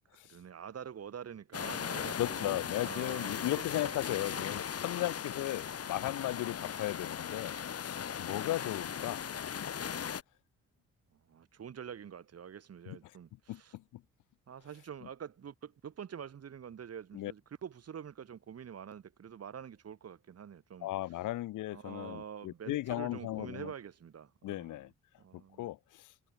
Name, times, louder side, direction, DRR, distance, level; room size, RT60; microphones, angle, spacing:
voice 1, 0.1-4.5 5.7-5.8 11.1-13.8 14.5-20.9 21.7-24.9 25.2-25.7, right 8 dB, 55° right, 5.3 m, -46 dB
sound 1, 1.5-10.2, left 8 dB, 50° left, 4.4 m, -38 dB
voice 2, 2.0-9.2 12.9-13.0 13.5-14.0 17.1-17.3 20.8-23.7 24.4-24.9 25.6-26.1, left 16 dB, 85° left, 1.3 m, -36 dB
cardioid pair, 90°, 30 cm